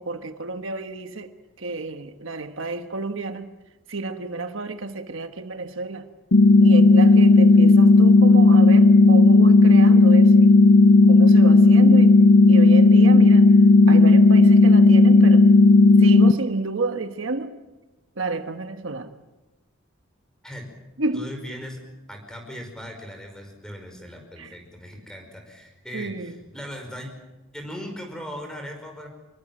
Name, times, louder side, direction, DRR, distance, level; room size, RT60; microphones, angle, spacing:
voice 1, 0.0-3.5 3.9-6.1 6.6-10.4 11.1-12.2 12.5-13.5 13.9-15.5 16.0-17.5 18.2-19.1 21.0-21.3 24.4-24.6 25.9-26.4, right 3 dB, 65° right, 7 dB, 1.3 m, -30 dB
sound 1, 6.3-16.3, left 3 dB, 65° left, 0.9 m, -13 dB
voice 2, 21.1-21.8 22.1-27.1 27.5-29.1, equal, 5° left, 3 dB, 5.3 m, -38 dB
25.0 x 22.5 x 7.8 m, 1.0 s
head